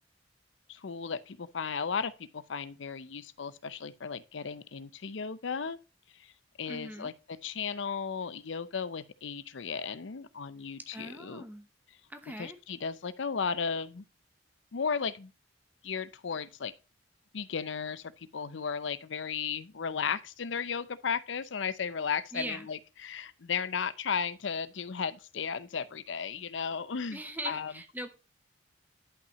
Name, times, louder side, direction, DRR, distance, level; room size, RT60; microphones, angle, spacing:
voice 1, 0.7-5.8 6.2-6.3 6.6-11.4 12.4-14.0 14.7-15.3 15.8-16.7 17.3-27.2 27.4-27.7, left 6 dB, 75° left, 0.6 m, -35 dB
voice 2, 6.7-7.1 10.9-11.7 12.1-12.6 22.3-22.7 27.1-28.2, right 1 dB, 10° right, 0.9 m, -40 dB
11.0 x 5.7 x 3.0 m
head